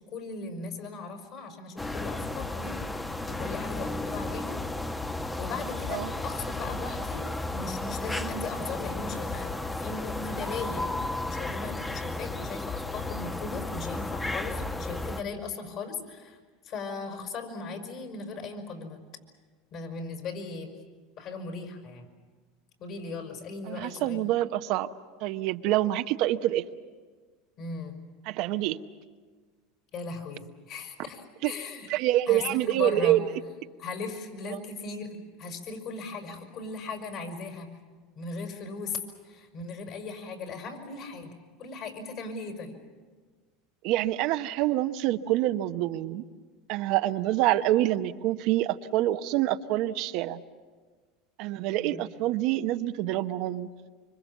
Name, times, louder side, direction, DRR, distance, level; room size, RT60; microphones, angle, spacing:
voice 1, 0.1-2.8 3.3-4.6 5.4-16.4 16.6-19.0 19.7-20.7 21.2-22.1 22.8-24.2 27.6-28.0 29.9-31.9 32.3-33.2 33.8-37.7 38.1-39.0 39.2-41.3 41.6-42.8 51.7-52.0, left 4 dB, 50° left, 4 dB, 5.8 m, -38 dB
sound 1, 1.8-15.2, left 2 dB, 10° left, 1.0 m, -33 dB
voice 2, 23.7-24.9 25.2-26.6 28.3-28.8 31.4-31.5 31.9-33.3 34.5-34.6 43.8-46.2 46.7-50.4 51.4-53.7, right 14 dB, 60° right, 9 dB, 0.9 m, -26 dB
25.5 x 25.0 x 7.2 m, 1.5 s
supercardioid pair, 105°, 0 cm